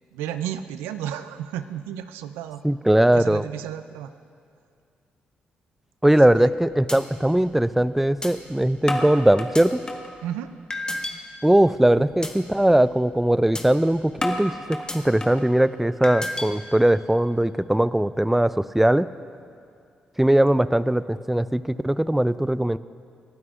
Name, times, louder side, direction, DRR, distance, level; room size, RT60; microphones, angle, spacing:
voice 1, 0.1-2.6 3.1-4.1 6.4-6.5 10.2-10.5 12.0-12.1, right 10 dB, 90° right, 11 dB, 0.5 m, -32 dB
voice 2, 2.6-3.4 6.0-9.8 11.4-19.1 20.2-22.8, right 1 dB, 5° right, 15 dB, 0.4 m, -20 dB
sound 1, 6.9-7.0 7.4-7.5 8.2-8.3 8.9-10.1 10.7-11.1 11.6-11.8 12.2-12.3 12.7-12.9 13.5-13.6 14.2-15.5 16.0-16.5, left 1 dB, 20° left, 1.7 m, -30 dB
28.0 x 12.5 x 2.4 m, 2.4 s
supercardioid pair, 50°, 4 cm